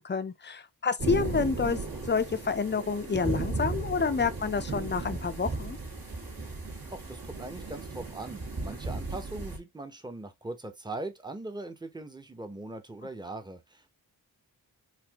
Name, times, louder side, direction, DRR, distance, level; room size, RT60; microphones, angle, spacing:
voice 1, 0.0-1.8 2.1-5.8, left 5 dB, 25° left, 0.6 m, -29 dB
sound 1, 1.0-9.6, right 3 dB, 60° right, 1.8 m, -35 dB
voice 2, 6.9-14.0, right 2 dB, 10° right, 0.8 m, -40 dB
4.2 x 2.7 x 2.8 m
cardioid pair, 55°, 40 cm